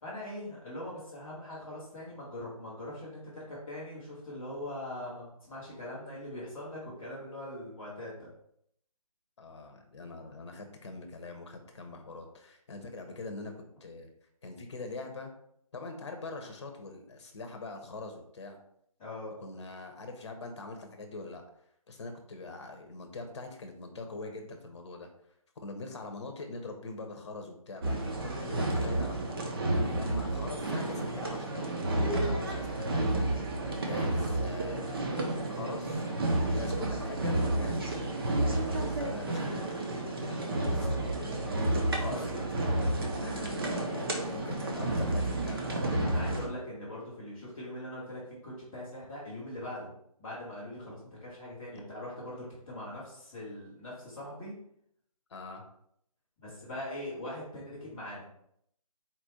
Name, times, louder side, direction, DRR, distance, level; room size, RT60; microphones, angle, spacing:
voice 1, 0.0-8.3 19.0-19.3 42.0-43.5 44.0-44.2 46.0-49.9 50.2-54.5 56.4-58.3, left 1 dB, ahead, -16 dB, 0.3 m, -42 dB
voice 2, 9.4-13.5 13.8-14.1 14.4-15.3 15.7-18.6 19.4-21.4 21.9-25.1 25.6-29.4 29.9-31.5 32.0-33.3 33.7-36.0 36.4-38.3 38.7-42.3 43.2-46.0 55.3-55.6, left 3 dB, 45° left, 5 dB, 0.8 m, -43 dB
sound 1, 27.8-46.5, right 2 dB, 40° right, 0.7 m, -31 dB
4.3 x 2.5 x 4.2 m, 0.72 s
figure-of-eight pair, 160°, 19 cm